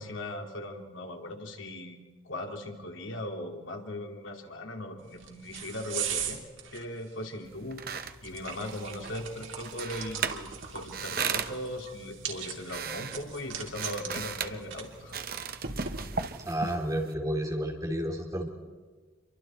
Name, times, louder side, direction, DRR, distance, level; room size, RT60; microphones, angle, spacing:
voice 1, 0.0-2.0 2.2-6.4 6.7-15.2, left 1 dB, 80° left, 2 dB, 2.8 m, -39 dB
sound 1, 5.0-16.5, right 7 dB, 80° right, 3.0 m, -40 dB
sound 2, 7.4-17.1, right 6 dB, 50° right, 0.9 m, -38 dB
voice 2, 16.4-18.5, right 1 dB, 20° right, 0 dB, 3.4 m, -31 dB
28.0 x 23.5 x 4.4 m, 1.4 s
head